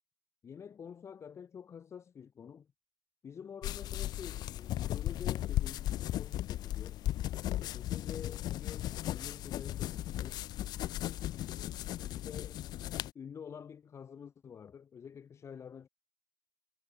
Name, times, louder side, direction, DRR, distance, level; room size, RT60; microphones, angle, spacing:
voice 1, 0.4-2.7 3.2-7.1 7.6-10.5 11.5-11.7 12.1-12.6 13.1-15.9, left 7 dB, 35° left, 1.0 m, -48 dB
sound 1, 3.6-13.1, left 14 dB, 60° left, 0.7 m, -36 dB
supercardioid pair, 100°, 8 cm